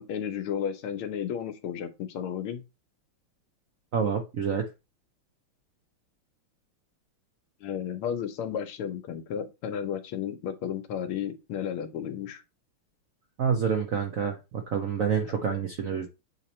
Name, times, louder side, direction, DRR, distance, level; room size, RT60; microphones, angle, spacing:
voice 1, 0.0-2.6 7.6-12.4, left 8 dB, 80° left, 1.7 m, -33 dB
voice 2, 3.9-4.7 13.4-16.1, right 6 dB, 65° right, 0.8 m, -28 dB
8.1 x 3.0 x 4.2 m
omnidirectional pair, 2.3 m